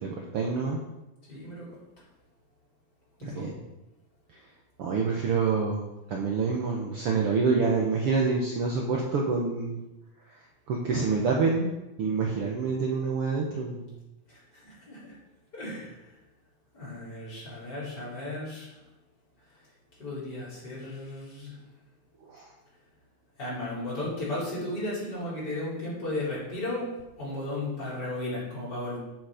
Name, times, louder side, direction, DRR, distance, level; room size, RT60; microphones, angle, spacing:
voice 1, 0.0-0.8 3.2-3.5 4.8-9.8 10.7-11.7 12.0-13.9 22.3-22.4, right 4 dB, 75° right, -1 dB, 1.3 m, -27 dB
voice 2, 1.3-1.8 3.2-3.5 14.3-15.1 15.5-16.2 16.7-18.8 20.0-21.6 23.4-26.9 27.2-29.0, left 1 dB, 25° left, -8 dB, 4.9 m, -35 dB
10.0 x 7.8 x 5.1 m, 0.99 s
omnidirectional pair, 4.2 m